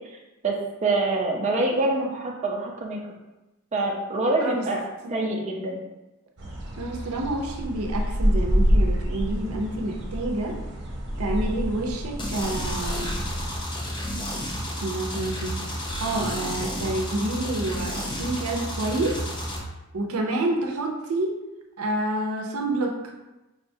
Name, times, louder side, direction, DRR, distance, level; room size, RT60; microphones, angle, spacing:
voice 1, 0.8-3.0 3.7-4.8 5.1-5.8, right 2 dB, 30° right, -2 dB, 0.6 m, -25 dB
sound 1, 6.4-13.6, equal, 55° right, 0.9 m, -27 dB
voice 2, 6.8-10.6 11.2-13.1 14.7-19.3 19.9-21.4 21.8-23.0, right 2 dB, 85° right, 2 dB, 0.6 m, -28 dB
sound 2, 12.2-19.6, equal, 20° left, 0.6 m, -31 dB
4.8 x 3.3 x 2.7 m, 1.0 s
head